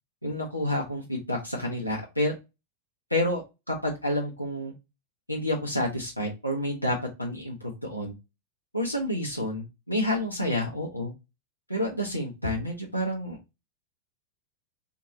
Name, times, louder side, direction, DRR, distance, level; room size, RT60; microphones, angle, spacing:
voice 1, 0.2-2.3 3.1-3.4 3.7-4.7 5.3-8.1 8.7-11.1 11.7-13.4, left 1 dB, 90° left, -1 dB, 0.6 m, -29 dB
3.7 x 2.5 x 2.8 m, 0.25 s
figure-of-eight pair, 90°, 0 cm